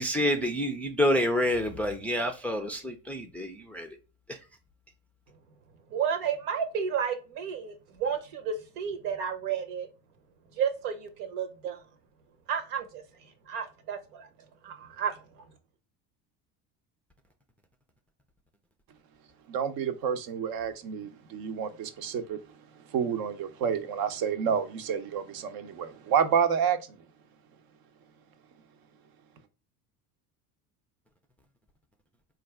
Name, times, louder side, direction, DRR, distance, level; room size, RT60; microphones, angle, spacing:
voice 1, 0.0-3.9 4.3-4.4, left 1 dB, 5° left, 0.4 m, -28 dB
voice 2, 5.9-9.9 10.6-11.8 12.5-13.0 13.5-14.3 15.0-15.1, right 7 dB, 75° right, 1.0 m, -31 dB
voice 3, 19.5-22.4 22.9-26.8, right 7 dB, 50° right, 0.7 m, -29 dB
4.0 x 2.4 x 3.3 m
hypercardioid pair, 75°, 47 cm